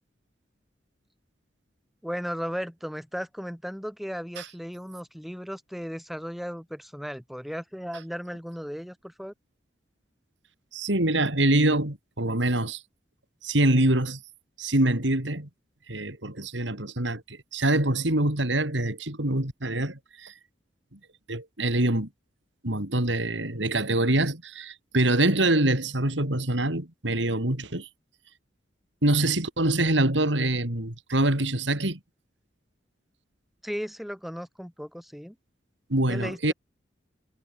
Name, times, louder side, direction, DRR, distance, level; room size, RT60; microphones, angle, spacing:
voice 1, 2.0-9.3 33.6-35.4 36.1-36.5, equal, ahead, 7.2 m, -36 dB
voice 2, 10.7-12.8 13.4-14.2 14.6-15.5 15.9-20.3 21.3-22.1 22.6-27.9 29.0-32.0 35.9-36.5, right 1 dB, 80° right, 4.0 m, -25 dB
head